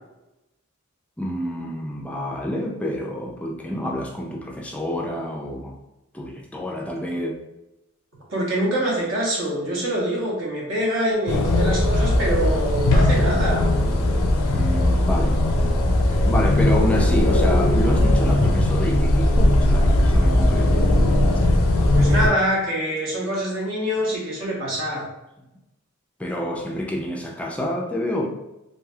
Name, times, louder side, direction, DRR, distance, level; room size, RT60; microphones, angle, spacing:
voice 1, 1.2-5.7 6.1-7.4 14.5-15.6 16.1-20.8 26.2-28.3, left 1 dB, 5° left, 0 dB, 0.3 m, -28 dB
voice 2, 8.3-13.7 21.9-25.0, right 1 dB, 70° right, -4 dB, 1.1 m, -25 dB
sound 1, 11.3-22.3, left 1 dB, 85° left, 0.5 m, -18 dB
3.2 x 2.6 x 2.3 m, 0.93 s
head